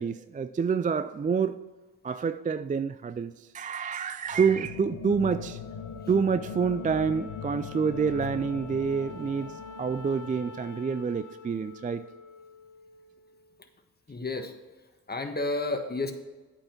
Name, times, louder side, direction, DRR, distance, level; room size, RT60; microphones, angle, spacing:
voice 1, 0.0-1.6 2.0-5.6 6.1-12.1, right 6 dB, 20° right, 13 dB, 0.3 m, -28 dB
ambient horror, 4.3-11.1, left 5 dB, 70° left, 0.9 m, -41 dB
Wind instrument woodwind instrument, 5.1-13.6, left 6 dB, 50° left, 1.1 m, -46 dB
voice 2, 14.1-16.1, left 2 dB, 25° left, 5 dB, 1.5 m, -32 dB
8.6 x 5.7 x 5.8 m, 1.2 s
hypercardioid pair, 40°, 41 cm